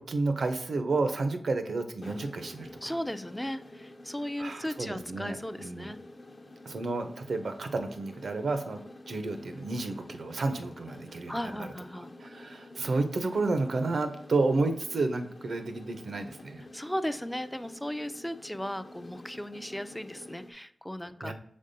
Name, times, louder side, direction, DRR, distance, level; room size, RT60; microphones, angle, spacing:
voice 1, 0.0-2.9 4.4-5.9 6.6-8.8 9.1-11.7 11.9-16.6 21.2-21.3, right 3 dB, 75° right, 7 dB, 0.6 m, -31 dB
sound 1, 2.0-20.5, left 1 dB, 50° left, 0.7 m, -49 dB
voice 2, 2.8-6.0 11.3-12.1 16.7-21.3, equal, 10° left, 11 dB, 0.3 m, -36 dB
5.2 x 3.6 x 2.6 m, 0.66 s
cardioid pair, 55°, 0 cm